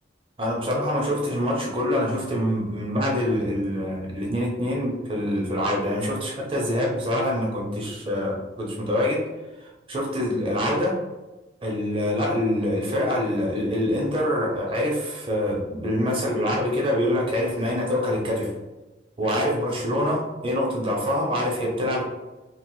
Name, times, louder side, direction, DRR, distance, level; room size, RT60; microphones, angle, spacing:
voice 1, 0.4-9.2 9.6-11.0 11.6-18.5 19.2-22.0, left 1 dB, 30° right, -2 dB, 0.7 m, -25 dB
2.9 x 2.5 x 3.0 m, 1.1 s
head